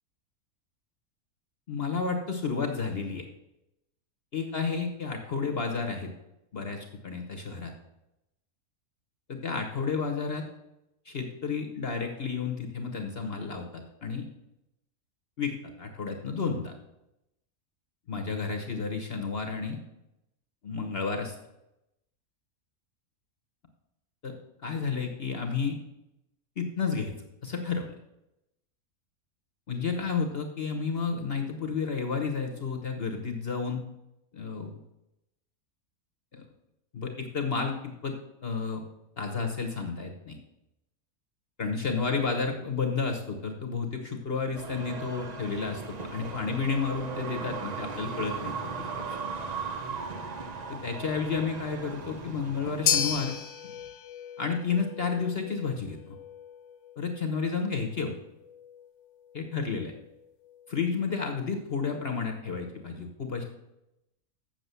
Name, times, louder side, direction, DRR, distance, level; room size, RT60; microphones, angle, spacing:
voice 1, 1.7-3.2 4.3-6.1 6.5-7.7 9.3-10.4 11.0-14.2 15.4-15.5 15.8-16.7 18.1-19.8 20.6-21.3 24.2-24.3 24.6-25.8 26.6-27.1 27.4-27.9 29.7-33.8 34.3-34.7 36.3-36.4 36.9-38.1 38.4-38.8 39.2-40.4 41.6-48.5 48.9-49.2 50.7-53.4 54.4-56.2 57.0-58.1 59.3-59.9 60.7-63.4, left 5 dB, 45° left, 4 dB, 1.2 m, -31 dB
sound 1, 44.5-53.3, right 5 dB, 40° right, 0.6 m, -37 dB
sound 2, 52.9-61.2, left 8 dB, 60° left, 0.9 m, -35 dB
7.7 x 7.0 x 6.8 m, 0.89 s
omnidirectional pair, 1.6 m